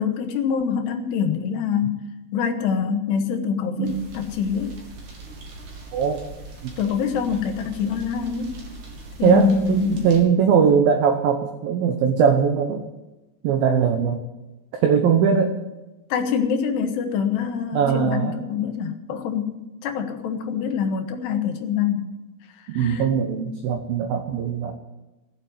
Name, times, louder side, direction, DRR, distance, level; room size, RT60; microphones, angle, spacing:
voice 1, 0.0-2.0 2.3-4.8 6.8-8.6 9.2-10.1 16.1-22.2 22.6-23.1, left 6 dB, 75° left, 5 dB, 3.5 m, -25 dB
sound 1, 3.8-10.2, right 3 dB, 50° right, 3.8 m, -41 dB
voice 2, 9.2-12.9 13.4-14.2 14.8-15.5 17.7-18.3 22.7-24.7, right 7 dB, 70° right, 5 dB, 2.5 m, -20 dB
18.0 x 7.5 x 9.6 m, 1.0 s
omnidirectional pair, 5.1 m